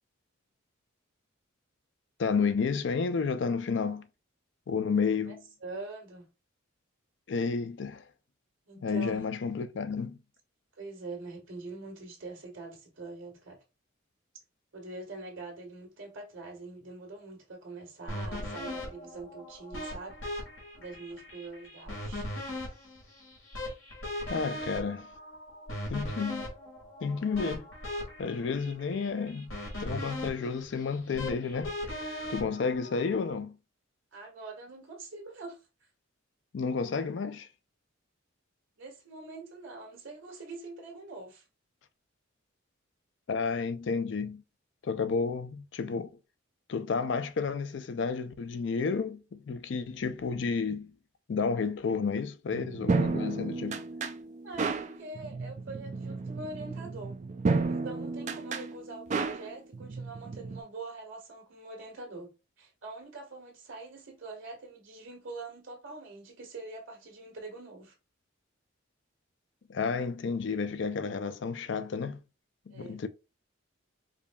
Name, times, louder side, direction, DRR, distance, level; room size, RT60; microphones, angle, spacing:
voice 1, 2.2-4.0 4.7-5.4 7.3-8.0 8.8-10.2 24.3-25.1 25.9-26.5 27.0-27.7 28.2-29.5 29.8-31.8 32.3-33.6 36.5-37.5 43.3-44.4 44.8-46.1 46.7-50.9 51.3-53.8 69.7-72.2 72.7-73.1, left 5 dB, 60° left, 0.4 m, -31 dB
voice 2, 5.6-6.3 8.7-9.2 10.8-13.6 14.7-20.2 20.8-22.3 34.1-35.6 38.8-41.4 54.4-57.2 57.7-62.3 62.6-67.9 72.7-73.0, right 3 dB, 70° right, 1.6 m, -44 dB
sound 1, 18.1-33.3, left 1 dB, 80° left, 1.9 m, -39 dB
sound 2, 52.5-60.6, right 4 dB, 35° right, 0.4 m, -32 dB
4.9 x 2.7 x 2.3 m
head